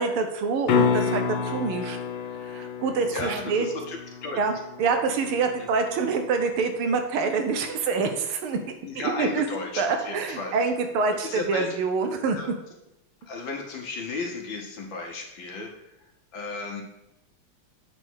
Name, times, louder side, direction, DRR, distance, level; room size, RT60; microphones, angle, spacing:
voice 1, 0.0-2.0 2.4-3.7 4.4-8.6 9.0-9.4 9.8-12.4, right 4 dB, 80° right, 6 dB, 1.7 m, -26 dB
sound 1, 0.7-6.7 11.4-11.5, left 6 dB, 85° left, 1.7 m, -30 dB
voice 2, 3.1-4.4 8.8-10.7 11.1-11.7 12.3-12.5 13.2-16.8, left 3 dB, 65° left, 2 dB, 1.8 m, -34 dB
8.0 x 3.5 x 6.2 m, 0.88 s
omnidirectional pair, 2.4 m